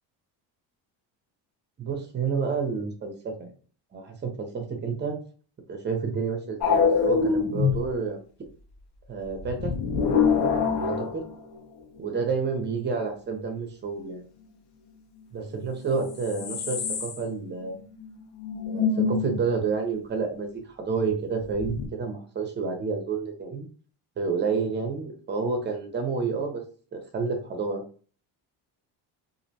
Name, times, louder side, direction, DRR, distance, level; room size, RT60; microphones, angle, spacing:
voice 1, 1.8-3.5 3.9-5.2 5.7-8.2 9.1-9.7 10.8-11.2 12.0-14.2 15.3-17.8 18.7-23.7 24.2-26.6 26.9-27.8, right 5 dB, 25° right, 4 dB, 0.5 m, -29 dB
sound 1, 6.6-7.9 9.4-11.6 15.7-15.8 16.0-17.3 17.6-17.7 18.0-18.1 18.4-19.4 21.5-21.9, left 5 dB, 60° left, 0.6 m, -25 dB
2.6 x 2.0 x 2.7 m, 0.41 s
cardioid pair, 120°, 46 cm